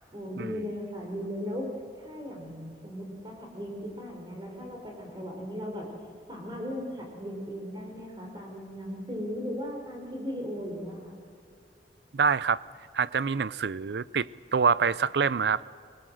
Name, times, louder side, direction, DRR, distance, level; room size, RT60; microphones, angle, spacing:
voice 1, 0.1-1.7 1.9-5.9 6.3-11.2, equal, 25° right, 1 dB, 4.8 m, -37 dB
voice 2, 12.1-12.6 12.9-15.6, right 6 dB, 75° right, 19 dB, 0.5 m, -26 dB
25.0 x 20.0 x 7.7 m, 2.4 s
head